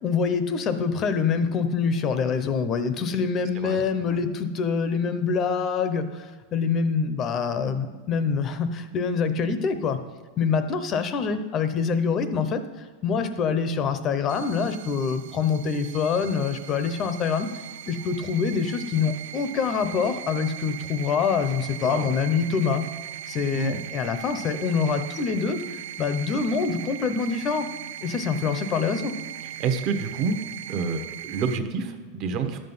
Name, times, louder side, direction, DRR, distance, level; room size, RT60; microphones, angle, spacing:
voice 1, 0.0-10.0 10.4-12.6 13.0-17.5 17.9-22.8 23.3-25.6 26.0-27.7 28.0-29.1, left 5 dB, 25° left, 10 dB, 0.7 m, -25 dB
voice 2, 3.5-4.2 21.8-22.1 23.5-23.8 29.6-30.4 30.7-32.6, right 5 dB, 35° right, 7 dB, 1.0 m, -28 dB
sound 1, 14.3-31.6, right 11 dB, 60° right, 0.4 m, -39 dB
12.0 x 7.7 x 5.5 m, 1.4 s
supercardioid pair, 175°, 0 cm